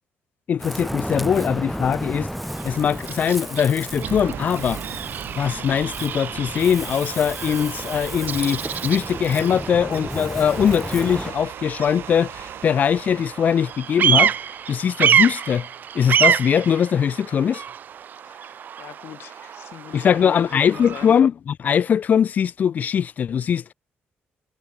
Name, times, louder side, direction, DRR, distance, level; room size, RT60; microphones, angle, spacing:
voice 1, 0.5-2.3 2.6-4.8 5.4-14.4 14.7-15.7 15.9-17.6 19.9-23.7, left 8 dB, 40° left, 0.3 m, -21 dB
Ocean, 0.6-11.3, equal, ahead, 2.5 m, -33 dB
Bird vocalization bird call bird song, 2.4-21.2, right 8 dB, 50° right, 0.7 m, -28 dB
sound 1, 3.9-16.1, right 11 dB, 65° right, 3.6 m, -38 dB
voice 2, 18.2-21.2, left 12 dB, 70° left, 4.8 m, -39 dB
cardioid pair, 135°, 4 cm